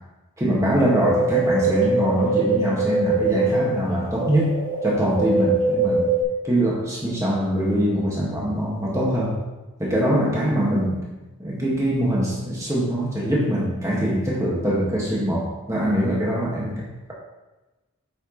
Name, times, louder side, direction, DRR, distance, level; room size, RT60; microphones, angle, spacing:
voice 1, 0.4-6.1 6.4-9.4 9.8-11.1 11.4-16.7, equal, 15° right, -5 dB, 1.8 m, -23 dB
sound 1, 0.8-3.6 4.0-4.9 5.2-6.2, right 5 dB, 30° right, 2.2 m, -21 dB
8.2 x 6.4 x 3.2 m, 1.1 s
head